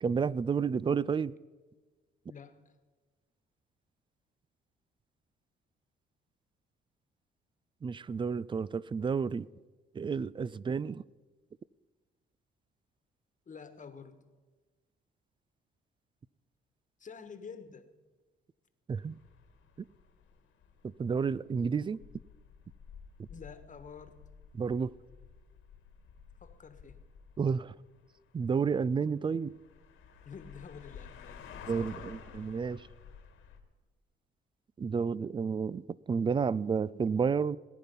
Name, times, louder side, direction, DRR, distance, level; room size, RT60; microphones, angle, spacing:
voice 1, 0.0-1.3 7.8-9.5 9.9-11.0 18.9-19.2 20.8-22.0 24.5-24.9 27.4-27.7 28.3-29.5 31.7-32.9 34.8-37.6, right 6 dB, 25° right, 0.3 m, -31 dB
voice 2, 2.3-2.7 13.5-14.2 17.0-17.9 23.3-24.2 26.4-27.0 30.2-31.9, left 6 dB, 40° left, 1.4 m, -49 dB
sound 1, 19.0-33.6, left 7 dB, 85° left, 1.8 m, -52 dB
19.5 x 9.7 x 5.3 m
cardioid pair, 90°, 20 cm